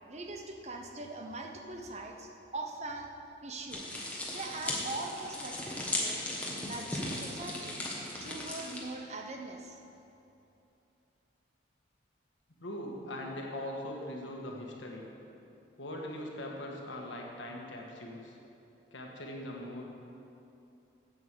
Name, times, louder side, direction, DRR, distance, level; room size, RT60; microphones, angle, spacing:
voice 1, 0.1-3.1 3.4-3.8 4.3-6.2 6.6-7.9 8.2-9.8, right 2 dB, 35° right, 2 dB, 0.8 m, -41 dB
sound 1, 3.7-8.8, left 1 dB, 5° left, 1.3 m, -37 dB
voice 2, 12.5-15.1 15.8-18.4 18.9-19.9, left 1 dB, 85° left, -1 dB, 1.6 m, -41 dB
8.2 x 7.9 x 6.8 m, 2.8 s
head